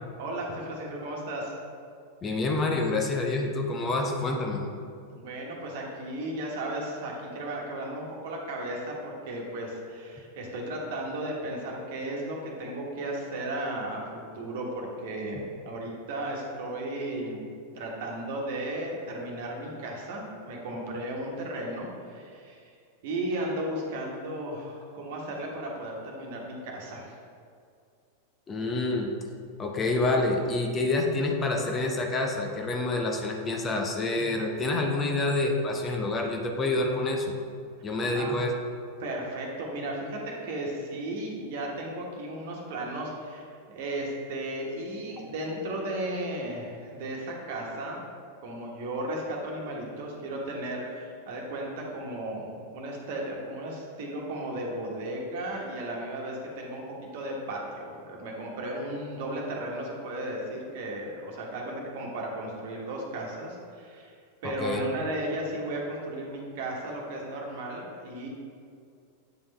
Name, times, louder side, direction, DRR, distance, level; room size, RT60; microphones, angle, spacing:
voice 1, 0.2-1.6 5.1-17.5 17.7-22.7 23.0-27.1 38.1-38.3 39.0-48.0 48.4-64.1 64.4-68.3, right 1 dB, 50° right, -1 dB, 1.4 m, -35 dB
voice 2, 2.2-4.6 28.5-29.1 29.6-37.3 37.8-38.5 64.4-64.8, left 2 dB, 20° left, 1 dB, 0.8 m, -27 dB
8.8 x 5.3 x 3.4 m, 2.3 s
figure-of-eight pair, 90°, 0 cm